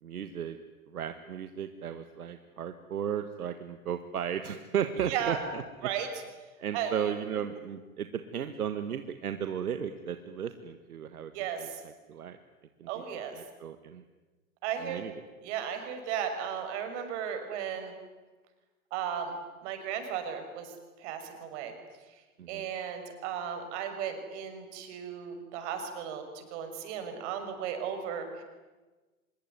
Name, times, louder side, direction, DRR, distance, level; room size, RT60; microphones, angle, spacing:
voice 1, 0.0-0.6 0.9-5.6 6.6-11.3 11.6-12.4 12.8-13.0 13.3-14.0 14.8-15.2 22.4-22.7, right 8 dB, 75° right, 9 dB, 1.7 m, -35 dB
voice 2, 11.3-11.8 12.9-13.3 14.6-15.0 15.4-17.9 18.9-19.4 19.6-20.7 21.0-21.7 22.5-28.4, right 8 dB, 50° right, 6 dB, 6.3 m, -35 dB
25.0 x 22.0 x 9.6 m, 1.3 s
hypercardioid pair, 110°, 45 cm